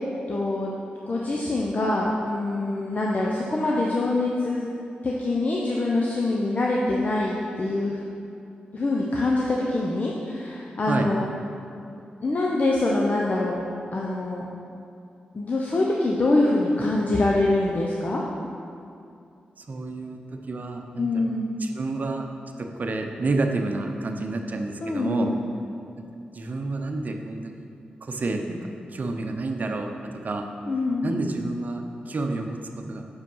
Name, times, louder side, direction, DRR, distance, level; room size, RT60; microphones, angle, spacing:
voice 1, 0.3-0.7 1.1-4.7 5.0-8.0 8.7-11.2 12.2-13.6 13.9-14.5 15.3-18.2 21.0-21.5 24.8-25.4 30.7-31.2, left 2 dB, 45° left, -3 dB, 0.8 m, -24 dB
voice 2, 19.6-20.2 20.5-21.3 21.6-22.3 22.6-25.3 26.0-26.1 26.3-27.7 28.0-29.9 30.2-30.5 31.0-33.1, right 2 dB, 50° right, 4 dB, 0.7 m, -29 dB
6.4 x 5.0 x 5.6 m, 2.5 s
supercardioid pair, 50°, 3 cm